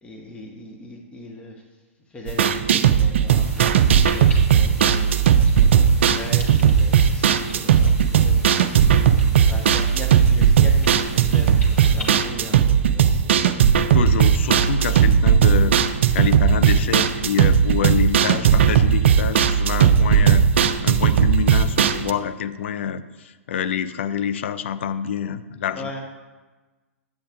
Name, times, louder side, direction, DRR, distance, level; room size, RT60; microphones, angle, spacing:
voice 1, 0.0-1.6 2.1-8.8 9.2-14.0 14.8-14.9 19.7-20.0 25.7-26.1, left 1 dB, 15° left, 0 dB, 1.0 m, -39 dB
sound 1, 2.3-22.1, right 8 dB, 55° right, 0.4 m, -17 dB
sound 2, 3.3-12.2, left 1 dB, 85° left, 1.6 m, -41 dB
voice 2, 13.9-15.8 16.1-25.9, left 8 dB, 55° left, 12 dB, 0.4 m, -27 dB
8.8 x 8.4 x 2.5 m, 1.2 s
figure-of-eight pair, 105°, 8 cm